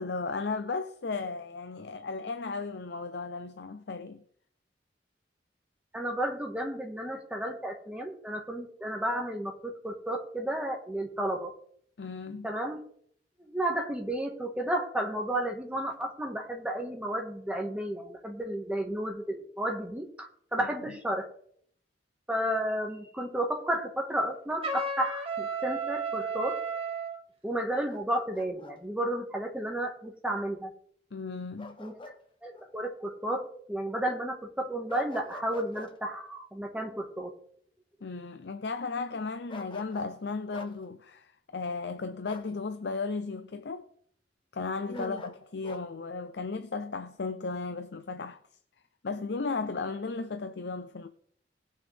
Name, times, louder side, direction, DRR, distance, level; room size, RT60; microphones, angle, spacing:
voice 1, 0.0-4.2 12.0-12.5 20.6-20.7 31.1-31.8 38.0-43.9 44.5-48.4 49.0-51.1, left 4 dB, 65° left, 0.6 m, -35 dB
voice 2, 5.9-11.5 12.4-12.8 13.4-21.2 22.3-26.6 27.4-30.7 31.8-32.0 32.4-37.3 44.9-45.2, right 1 dB, 5° right, 1.6 m, -32 dB
Trumpet, 24.6-27.2, right 4 dB, 35° right, 1.7 m, -33 dB
Bark, 27.7-28.8 31.6-32.2 32.5-32.7 34.9-35.9 39.5-40.2 40.5-40.7 42.2-42.5 44.9-45.8, left 2 dB, 30° left, 1.0 m, -46 dB
19.0 x 6.4 x 3.5 m
head